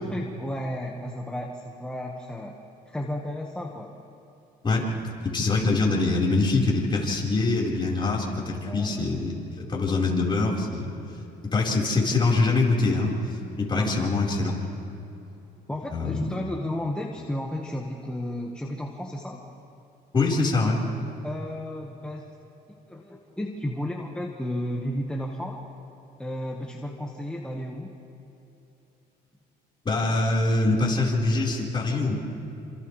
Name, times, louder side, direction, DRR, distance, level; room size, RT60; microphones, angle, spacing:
voice 1, 0.0-2.5 2.8-3.9 8.6-9.0 13.8-14.1 15.7-19.4 21.2-22.4 22.7-25.7 26.2-27.9, left 1 dB, 5° left, -1 dB, 1.6 m, -33 dB
voice 2, 4.6-9.3 9.6-10.9 11.4-14.6 15.9-16.2 20.1-20.8 29.8-32.1, left 3 dB, 30° left, -3 dB, 4.8 m, -24 dB
28.0 x 27.5 x 3.4 m, 3.0 s
cardioid pair, 110°, 17 cm